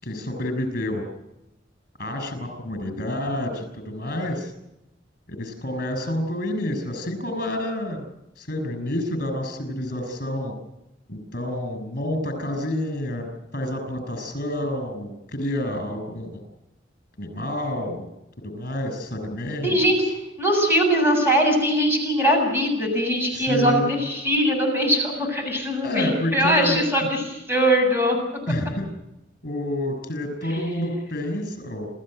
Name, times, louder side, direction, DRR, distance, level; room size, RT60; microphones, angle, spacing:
voice 1, 0.0-1.0 2.0-4.5 5.3-8.1 8.4-10.5 11.1-16.4 17.2-18.1 18.5-19.8 23.3-24.0 25.8-26.8 28.5-28.9 29.4-31.9, left 1 dB, 50° left, 8 dB, 6.4 m, -28 dB
voice 2, 19.6-20.0 20.4-28.2, equal, 15° right, 2 dB, 7.2 m, -21 dB
29.0 x 14.5 x 7.8 m, 0.90 s
head